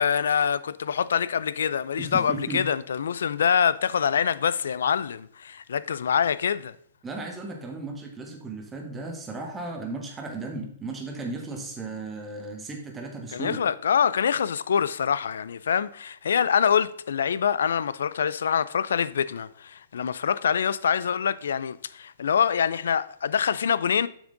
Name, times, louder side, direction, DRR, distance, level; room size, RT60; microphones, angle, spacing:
voice 1, 0.0-6.7 13.3-24.1, left 7 dB, 85° left, 0.4 m, -25 dB
voice 2, 2.0-2.6 7.0-13.6, right 3 dB, 10° right, 1.3 m, -35 dB
7.1 x 6.2 x 3.8 m
hypercardioid pair, 160°, 0 cm